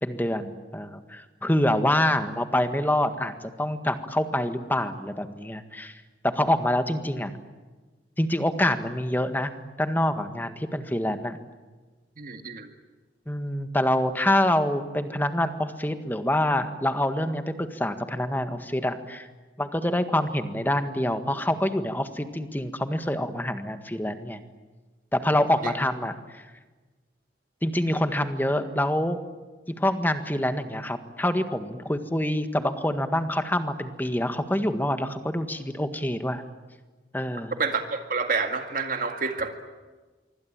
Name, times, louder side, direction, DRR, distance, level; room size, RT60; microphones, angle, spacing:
voice 1, 0.0-3.3 3.6-5.9 6.2-7.3 8.2-9.5 9.8-11.4 13.3-19.3 19.6-24.4 25.1-26.4 27.6-29.2 29.8-36.4 37.1-37.6, left 1 dB, 10° left, 8 dB, 1.7 m, -26 dB
voice 2, 12.2-12.7 25.6-25.7 37.6-39.5, right 4 dB, 50° right, 6 dB, 2.1 m, -28 dB
26.0 x 24.0 x 8.9 m, 1.3 s
head